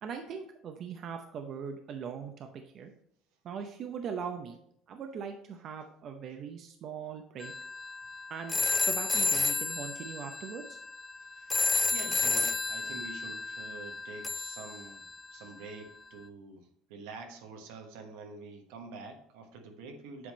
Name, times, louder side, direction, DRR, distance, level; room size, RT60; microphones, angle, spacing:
voice 1, 0.0-2.5 2.7-2.9 3.4-4.6 4.9-7.5 8.3-8.6 8.9-10.8, right 6 dB, 50° right, 5 dB, 0.6 m, -40 dB
sound 1, 7.4-15.5, left 3 dB, 20° left, 0.5 m, -32 dB
voice 2, 11.2-11.6 11.9-15.0 15.3-20.3, right 3 dB, 80° right, 4 dB, 1.0 m, -46 dB
7.7 x 3.6 x 4.1 m, 0.70 s
supercardioid pair, 90°, 0 cm